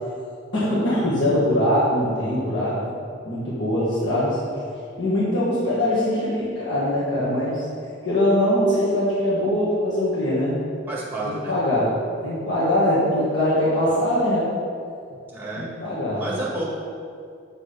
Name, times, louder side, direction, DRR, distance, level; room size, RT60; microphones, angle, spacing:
voice 1, 0.5-2.8 3.2-4.4 5.0-7.6 8.0-10.5 11.2-11.9 12.2-14.5 15.6-16.2, left 1 dB, 65° left, -9 dB, 1.4 m, -22 dB
voice 2, 10.9-11.5 15.3-15.7 16.1-16.6, right 2 dB, 10° right, -5 dB, 1.6 m, -30 dB
7.4 x 4.3 x 5.0 m, 2.3 s
head